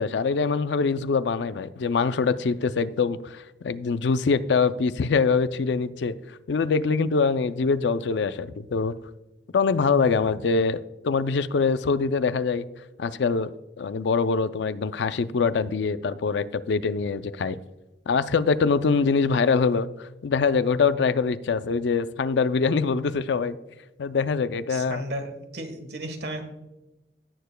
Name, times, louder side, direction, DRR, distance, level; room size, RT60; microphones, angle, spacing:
voice 1, 0.0-8.9 9.5-10.8 11.0-12.7 13.0-13.5 13.8-17.6 18.1-23.6 24.0-25.0, left 5 dB, 75° left, 14 dB, 0.4 m, -24 dB
voice 2, 24.7-26.4, right 1 dB, 65° right, 6 dB, 1.4 m, -34 dB
16.5 x 6.9 x 2.2 m, 1.0 s
head